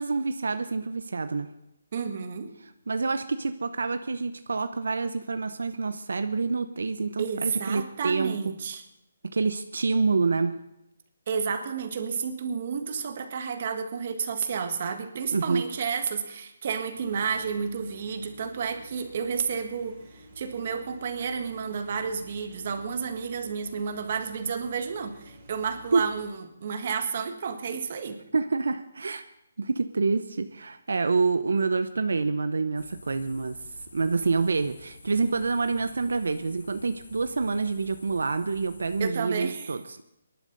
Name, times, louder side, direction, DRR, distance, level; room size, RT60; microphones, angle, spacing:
voice 1, 0.0-1.5 2.9-8.3 9.3-10.6 15.3-15.6 25.9-26.0 28.3-29.2 29.6-33.5 33.9-40.0, right 4 dB, 85° right, 10 dB, 0.8 m, -27 dB
voice 2, 1.9-2.5 7.2-8.8 11.3-28.2 39.0-39.7, right 6 dB, 40° right, 6 dB, 1.6 m, -31 dB
sound 1, 16.9-26.3, equal, 25° right, 5.9 m, -51 dB
sound 2, 32.8-39.1, left 4 dB, 70° left, 2.4 m, -50 dB
23.5 x 11.5 x 4.0 m, 0.85 s
hypercardioid pair, 170°, 0 cm